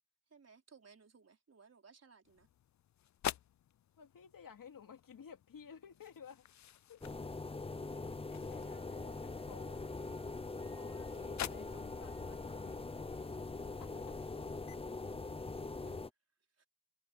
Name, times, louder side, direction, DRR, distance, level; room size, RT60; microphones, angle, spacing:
voice 1, 0.3-2.5 15.8-16.0 16.6-16.7, right 5 dB, 50° right, 4.9 m, -61 dB
sound 1, 2.3-14.8, left 11 dB, 60° left, 0.5 m, -49 dB
voice 2, 4.0-6.5 6.9-7.0 8.3-9.9 10.7-12.8 13.8-14.5, left 7 dB, 85° left, 3.0 m, -55 dB
sound 2, 7.0-16.1, left 3 dB, 15° left, 0.7 m, -43 dB
Wind instrument woodwind instrument, 8.5-14.6, right 9 dB, 75° right, 1.8 m, -66 dB
wide cardioid pair, 115°, 32 cm